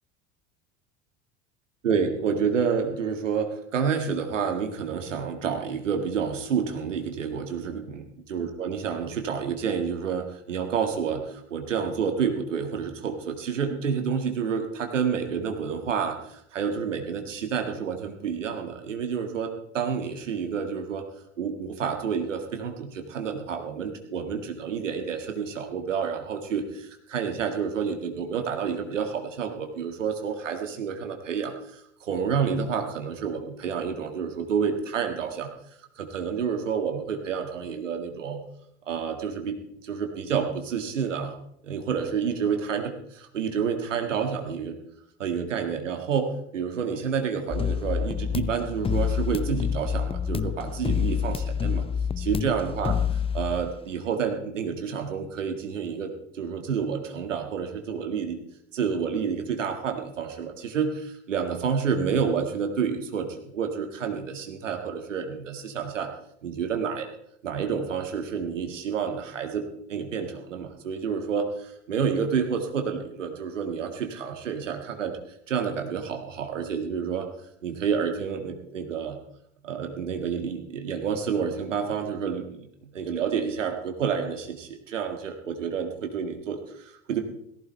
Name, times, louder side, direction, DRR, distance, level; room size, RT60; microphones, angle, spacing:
voice 1, 1.8-8.0 8.3-21.0 21.4-35.5 36.0-38.4 38.9-41.3 41.6-44.8 45.2-51.9 52.2-53.0 53.3-58.4 58.7-63.3 63.5-66.1 66.4-67.1 67.4-75.2 75.5-77.3 77.6-79.2 79.6-82.7 82.9-87.2, right 6 dB, 85° right, 4 dB, 1.9 m, -29 dB
sound 1, 47.5-53.8, left 7 dB, 15° left, 0.6 m, -28 dB
17.5 x 15.5 x 3.3 m, 0.72 s
hypercardioid pair, 70°, 37 cm